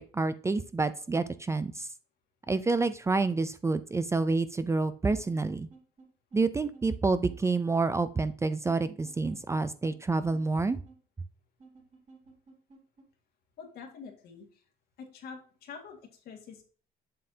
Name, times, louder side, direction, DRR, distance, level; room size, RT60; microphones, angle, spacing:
voice 1, 0.0-1.9 2.5-5.7 6.3-10.8, right 3 dB, 15° right, 13 dB, 0.4 m, -28 dB
sound 1, 5.1-6.1 6.3-6.4 6.7-6.8 7.3-7.4 8.0-8.2 8.7-9.6 9.9-10.0 10.3-10.4 10.8-11.0 11.6-13.0, right 4 dB, 45° right, 3.4 m, -54 dB
voice 2, 13.6-14.6 15.0-16.6, left 5 dB, 65° left, 3 dB, 1.9 m, -46 dB
7.5 x 6.5 x 2.8 m, 0.40 s
cardioid pair, 110°, 17 cm